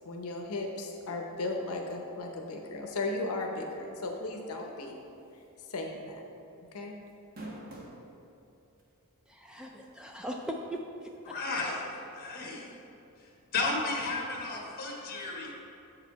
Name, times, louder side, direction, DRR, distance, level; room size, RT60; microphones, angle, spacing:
voice 1, 0.0-4.9 5.7-6.2 6.7-7.0, left 2 dB, 70° left, 2 dB, 0.7 m, -36 dB
sound 1, 5.4-5.6 6.0-6.1 7.1-8.0 8.8-8.9 10.4-10.5, right 1 dB, 45° right, 1.1 m, -43 dB
voice 2, 9.3-11.3, equal, 5° right, 1 dB, 0.3 m, -40 dB
voice 3, 11.3-12.7 13.2-15.5, left 3 dB, 45° left, -1 dB, 1.3 m, -34 dB
7.5 x 4.9 x 4.5 m, 2.7 s
head